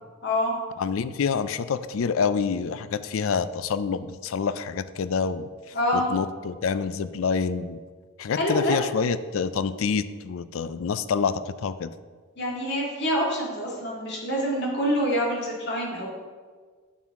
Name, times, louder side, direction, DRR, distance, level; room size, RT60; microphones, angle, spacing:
voice 1, 0.2-0.5 5.7-6.1 8.3-8.9 12.4-16.1, equal, 50° left, -3 dB, 2.0 m, -26 dB
voice 2, 0.8-5.5 5.9-7.8 8.2-11.9, left 5 dB, 65° left, 14 dB, 0.4 m, -27 dB
9.4 x 6.3 x 3.6 m, 1.5 s
head